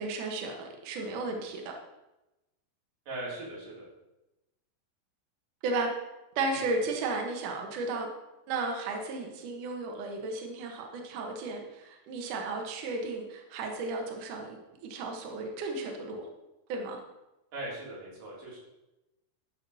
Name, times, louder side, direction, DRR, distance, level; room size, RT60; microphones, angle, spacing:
voice 1, 0.0-1.8 5.6-5.9 6.3-8.1 8.5-14.6 14.8-16.3 16.7-17.0, right 3 dB, 90° right, 2 dB, 1.7 m, -34 dB
voice 2, 3.1-3.8 6.5-6.6 17.5-18.6, right 1 dB, 45° right, -5 dB, 4.7 m, -39 dB
12.5 x 8.1 x 4.2 m, 0.97 s
omnidirectional pair, 5.7 m